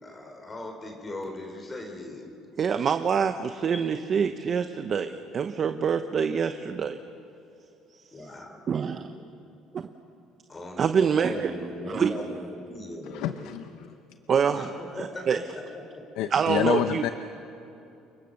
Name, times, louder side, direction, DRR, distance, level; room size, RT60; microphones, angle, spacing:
voice 1, 0.0-2.3 2.8-2.9 3.7-3.9 8.1-8.6 9.1-9.3 10.5-13.5 14.5-15.8, left 1 dB, 20° left, 3 dB, 3.7 m, -39 dB
voice 2, 2.6-7.0 8.7-9.1 10.8-11.5 11.9-12.3 14.3-14.7 15.0-15.4 16.3-17.0, right 6 dB, 40° right, 8 dB, 0.9 m, -25 dB
voice 3, 13.1-13.9 16.2-17.1, left 11 dB, 80° left, 9 dB, 0.8 m, -28 dB
29.0 x 23.5 x 6.6 m, 2.8 s
cardioid pair, 125°, 0 cm